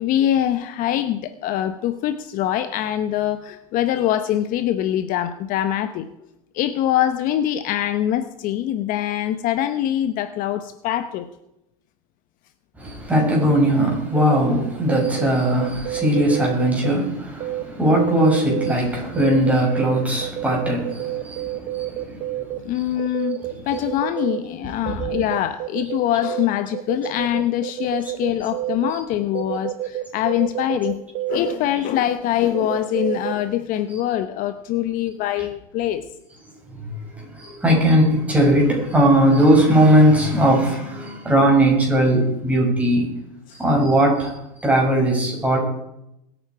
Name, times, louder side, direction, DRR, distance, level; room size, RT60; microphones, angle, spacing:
voice 1, 0.0-6.0 6.5-11.3 22.6-31.0 31.3-36.0, left 11 dB, 45° left, 11 dB, 1.0 m, -23 dB
voice 2, 12.8-22.8 23.5-23.6 24.9-25.0 36.8-43.0 43.6-45.6, right 1 dB, 5° right, -2 dB, 6.6 m, -19 dB
sound 1, 14.2-14.4 14.8-16.9 17.4-17.6 17.9-18.7 19.1-22.6 23.0-24.4 24.9-26.5 26.7-28.9 29.3-33.3, right 15 dB, 40° right, 1.0 m, -28 dB
22.0 x 9.3 x 4.8 m, 0.83 s
supercardioid pair, 120°, 19 cm